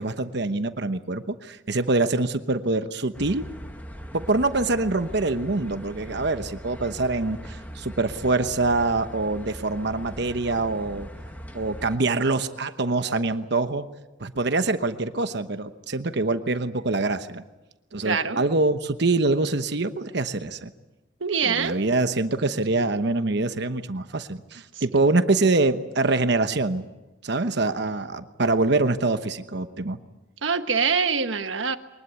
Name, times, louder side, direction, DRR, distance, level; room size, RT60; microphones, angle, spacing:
voice 1, 0.0-3.4 4.1-11.1 11.5-13.9 14.2-17.4 17.9-20.7 21.4-26.8 27.2-30.0, right 3 dB, 60° right, 9 dB, 1.1 m, -25 dB
sound 1, 3.1-12.0, equal, 10° left, 1.7 m, -40 dB
voice 2, 18.0-18.4 21.2-21.9 24.8-24.9 30.4-31.8, right 5 dB, 90° right, 8 dB, 1.4 m, -24 dB
23.0 x 20.5 x 8.4 m, 1.0 s
head